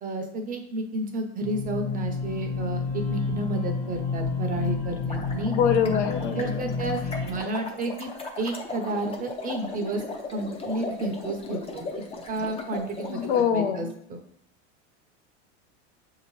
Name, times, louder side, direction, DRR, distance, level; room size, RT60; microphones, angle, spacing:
voice 1, 0.0-5.5 5.9-6.0 6.3-8.1 8.4-10.0 10.3-11.8 12.3-14.2, right 2 dB, 25° right, 4 dB, 0.6 m, -31 dB
sound 1, 1.4-7.4, left 4 dB, 35° left, 1.1 m, -30 dB
sound 2, 4.9-13.4, left 2 dB, 15° left, 0.5 m, -37 dB
voice 2, 5.5-6.7 13.1-13.9, left 7 dB, 75° left, 8 dB, 0.7 m, -24 dB
6.0 x 2.8 x 3.0 m, 0.70 s
supercardioid pair, 125°, 34 cm